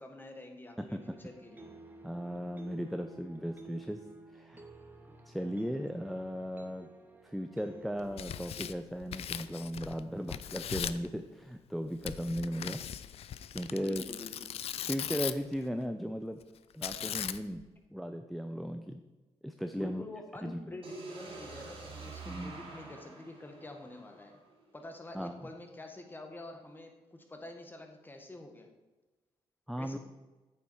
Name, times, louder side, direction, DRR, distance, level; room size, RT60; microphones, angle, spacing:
voice 1, 0.0-1.7 13.8-14.5 19.8-24.4 24.7-28.7 29.7-30.0, left 2 dB, 20° left, 4 dB, 1.6 m, -47 dB
voice 2, 0.8-1.2 2.0-4.0 4.3-4.7 5.3-6.9 7.2-12.8 13.5-14.0 14.9-16.4 16.7-17.6 17.9-19.0 19.4-20.0 20.4-20.7 22.3-22.5 25.1-25.5 29.7-30.0, equal, ahead, 7 dB, 0.5 m, -37 dB
sound 1, 1.0-8.7, right 2 dB, 15° right, 1.3 m, -52 dB
Tearing, 8.0-10.0 10.3-11.1 12.0-15.5 16.8-17.6, left 10 dB, 65° left, 0.4 m, -39 dB
sound 2, 20.8-24.7, right 3 dB, 55° right, 2.9 m, -47 dB
8.8 x 7.2 x 4.7 m, 1.2 s
cardioid pair, 85°, 11 cm